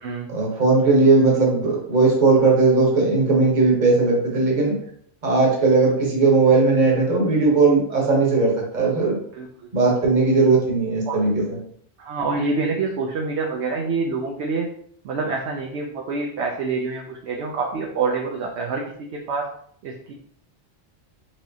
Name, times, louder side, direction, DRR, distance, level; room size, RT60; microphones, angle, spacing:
voice 1, 0.3-4.8 5.2-9.2 9.7-11.6, right 3 dB, 40° right, -1 dB, 1.1 m, -18 dB
voice 2, 9.3-9.7 10.0-10.1 11.1-11.3 12.0-14.7 15.0-19.5 19.8-20.1, right 4 dB, 65° right, 0 dB, 0.8 m, -26 dB
4.5 x 3.0 x 2.7 m, 0.64 s
omnidirectional pair, 1.3 m